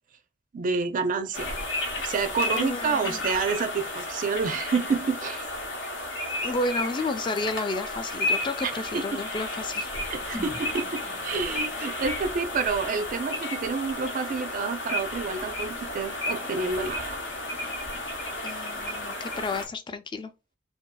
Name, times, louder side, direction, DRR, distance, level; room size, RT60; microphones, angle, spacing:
voice 1, 0.5-1.5 2.0-5.4 8.6-9.0 10.1-17.2, right 5 dB, 45° right, 0.4 m, -29 dB
sound 1, 1.3-19.7, left 2 dB, 75° left, 0.8 m, -33 dB
voice 2, 2.5-3.2 6.4-9.9 18.4-20.3, left 2 dB, 25° left, 0.3 m, -31 dB
sound 2, 10.3-14.3 14.6-14.7, equal, 40° left, 0.9 m, -46 dB
2.7 x 2.3 x 2.2 m
head